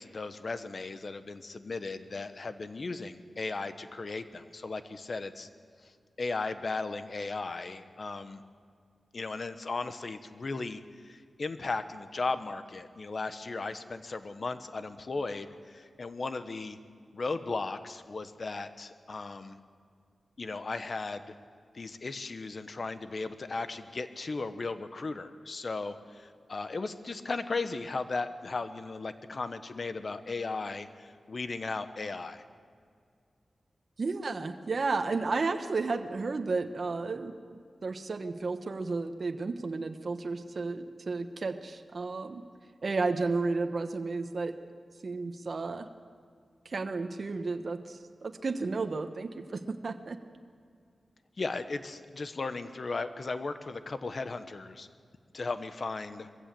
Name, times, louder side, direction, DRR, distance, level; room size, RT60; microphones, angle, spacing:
voice 1, 0.0-5.5 5.8-5.9 6.2-8.4 9.1-16.8 17.1-19.6 20.4-21.3 21.7-32.4 51.4-54.9 55.3-56.3, left 3 dB, 55° left, 10 dB, 1.1 m, -36 dB
voice 2, 34.0-42.4 42.8-44.6 45.0-45.9 46.6-50.2, right 3 dB, 55° right, 7 dB, 1.2 m, -33 dB
22.0 x 15.5 x 7.8 m, 2.2 s
cardioid pair, 65°, 0 cm